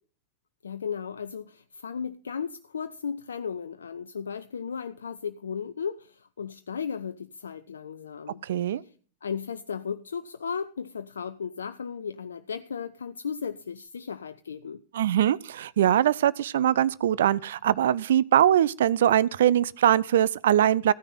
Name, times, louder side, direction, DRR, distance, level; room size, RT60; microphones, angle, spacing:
voice 1, 0.6-8.4 8.8-8.9 9.2-14.8, left 6 dB, 70° left, 0.4 m, -35 dB
voice 2, 8.4-8.8 14.9-20.9, right 11 dB, 60° right, 0.5 m, -22 dB
14.5 x 9.8 x 4.1 m
figure-of-eight pair, 90°, 0 cm